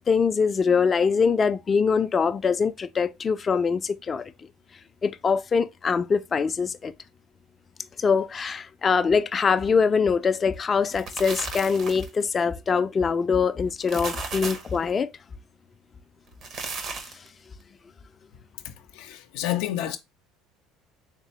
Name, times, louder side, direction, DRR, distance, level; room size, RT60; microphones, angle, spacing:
voice 1, 0.1-4.3 5.0-6.9 8.0-15.1, left 5 dB, 30° left, 0.4 m, -23 dB
sound 1, 10.8-12.2 13.7-14.8 16.3-17.3, right 4 dB, 45° right, 0.8 m, -35 dB
voice 2, 18.6-20.0, left 13 dB, 85° left, 0.5 m, -30 dB
3.7 x 3.3 x 3.0 m
supercardioid pair, 110°, 0 cm